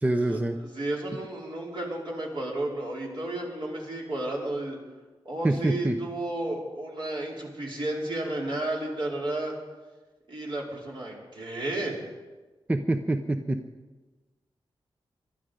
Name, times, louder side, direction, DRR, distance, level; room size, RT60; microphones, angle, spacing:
voice 1, 0.0-0.6 5.4-6.0 12.7-13.6, right 2 dB, 15° right, 6 dB, 0.8 m, -25 dB
voice 2, 0.7-4.8 5.2-9.5 10.3-12.0, right 1 dB, 55° right, -3 dB, 4.6 m, -32 dB
22.5 x 12.5 x 5.2 m, 1.2 s
wide cardioid pair, 105°, 10 cm